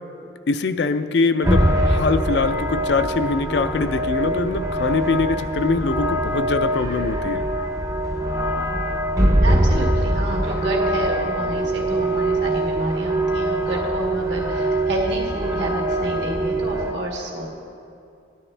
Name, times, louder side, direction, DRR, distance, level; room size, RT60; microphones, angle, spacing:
voice 1, 0.5-7.4, left 3 dB, 65° left, 9 dB, 0.5 m, -23 dB
sound 1, 1.4-16.9, right 1 dB, 20° right, 0.7 m, -22 dB
voice 2, 9.4-17.5, right 1 dB, 70° right, -1 dB, 1.8 m, -29 dB
14.0 x 11.0 x 3.3 m, 2.5 s
head